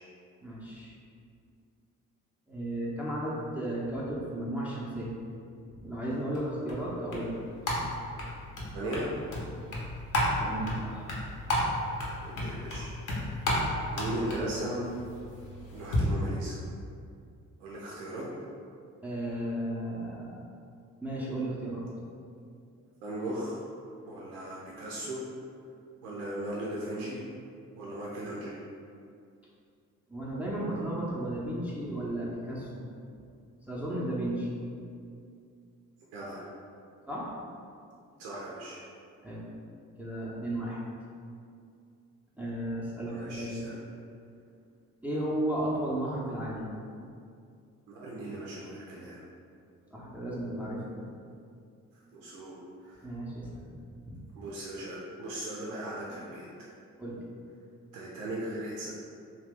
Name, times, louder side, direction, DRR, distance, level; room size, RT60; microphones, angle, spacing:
voice 1, 0.4-0.9 2.5-5.2 5.8-7.4 10.4-11.1 19.0-20.4 21.0-21.8 30.1-32.8 33.7-34.5 36.2-36.3 37.1-37.3 39.2-39.5 40.0-40.8 42.4-43.6 45.0-46.7 49.9-51.0 53.0-53.5 57.0-57.2, right 1 dB, 5° right, -6 dB, 0.7 m, -34 dB
sound 1, 6.3-16.0, left 1 dB, 55° left, 0.9 m, -33 dB
voice 2, 8.7-9.1 12.2-13.5 13.9-14.9 15.7-16.5 17.6-18.2 23.0-23.6 24.1-25.2 26.0-27.2 27.8-28.6 36.1-36.4 38.2-38.8 43.0-43.8 47.9-49.2 52.1-53.1 54.4-56.5 57.9-58.9, right 1 dB, 80° right, -6 dB, 0.6 m, -38 dB
2.8 x 2.2 x 3.5 m, 2.4 s
hypercardioid pair, 45°, 37 cm